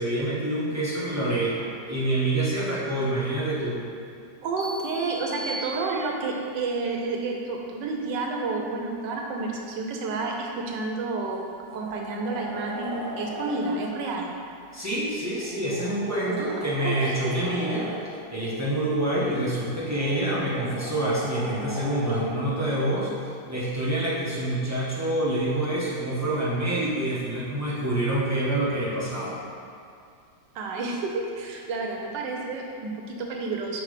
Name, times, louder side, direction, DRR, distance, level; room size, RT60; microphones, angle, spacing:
voice 1, 0.0-3.8 14.7-17.9 18.3-23.1 23.5-29.4, right 1 dB, 10° right, -8 dB, 0.8 m, -27 dB
voice 2, 4.4-14.3 16.2-16.6 16.8-17.3 30.5-33.8, right 3 dB, 75° right, 0 dB, 1.3 m, -30 dB
sound 1, 4.6-6.4, right 1 dB, 85° left, 1.7 m, -38 dB
sound 2, 11.3-13.6 15.2-18.0 19.5-22.3 24.6-24.7, equal, 15° left, 1.4 m, -39 dB
5.9 x 4.5 x 4.9 m, 2.4 s
omnidirectional pair, 2.0 m